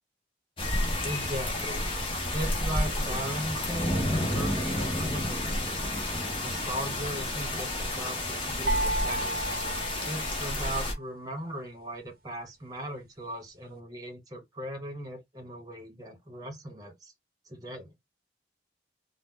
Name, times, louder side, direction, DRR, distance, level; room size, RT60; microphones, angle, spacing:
sound 1, 0.6-10.9, left 1 dB, 30° left, 1.0 m, -30 dB
voice 1, 1.0-1.8 2.3-5.9 6.4-9.5 10.0-17.1 17.5-17.9, equal, 20° right, 0.9 m, -38 dB
sound 2, 8.7-10.8, right 1 dB, 55° right, 0.6 m, -33 dB
2.9 x 2.1 x 3.6 m
head